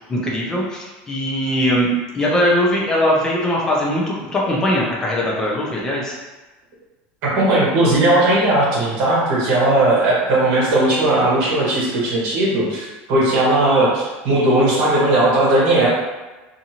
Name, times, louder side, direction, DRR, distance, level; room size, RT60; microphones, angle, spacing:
voice 1, 0.1-1.9 2.1-6.2, left 1 dB, 10° left, -3 dB, 0.4 m, -20 dB
voice 2, 7.2-15.9, right 1 dB, 50° right, -5 dB, 1.1 m, -17 dB
2.6 x 2.6 x 2.8 m, 1.2 s
cardioid pair, 180°, 5 cm